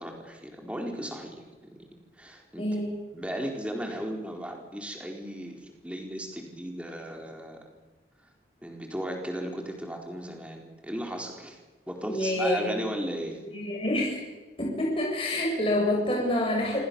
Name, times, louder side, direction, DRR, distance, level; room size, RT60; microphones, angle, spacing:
voice 1, 0.0-1.9 2.2-2.6 3.1-7.6 8.6-11.6 11.9-13.4, equal, 5° right, 1 dB, 4.6 m, -36 dB
voice 2, 2.6-3.0 12.1-12.7 13.4-14.2 14.6-16.8, left 1 dB, 30° left, -2 dB, 7.8 m, -27 dB
28.0 x 25.5 x 7.2 m, 1.2 s
head